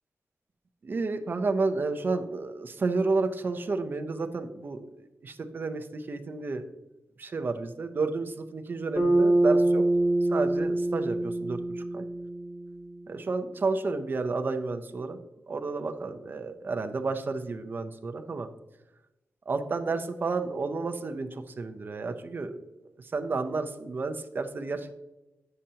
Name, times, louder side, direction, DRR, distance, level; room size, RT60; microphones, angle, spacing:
voice 1, 0.8-4.9 5.2-6.6 7.2-9.8 10.3-12.1 13.1-15.2 15.5-18.5 19.5-22.6 23.0-24.9, right 3 dB, 40° right, 7 dB, 0.5 m, -31 dB
Bass guitar, 9.0-13.3, right 1 dB, 10° left, 1.2 m, -25 dB
8.7 x 6.5 x 2.8 m, 0.97 s
wide cardioid pair, 170°, 5 cm